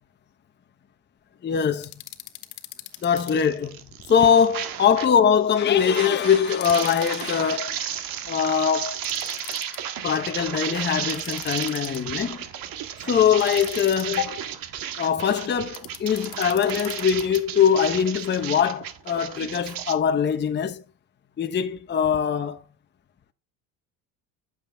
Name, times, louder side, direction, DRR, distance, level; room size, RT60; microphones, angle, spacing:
voice 1, 1.4-1.9 3.0-3.8 4.1-7.7 8.3-9.0 10.0-12.4 13.0-14.5 15.0-20.8 21.4-22.6, left 7 dB, 25° left, 1.0 m, -22 dB
sound 1, 1.8-3.3 6.5-7.3 9.0-9.8 11.1-12.2 13.4-14.2 15.7-17.4, left 17 dB, 80° left, 1.7 m, -40 dB
sound 2, 3.1-5.1 5.4-19.9, right 10 dB, 55° right, 1.7 m, -34 dB
11.5 x 7.4 x 3.5 m
supercardioid pair, 105°, 40 cm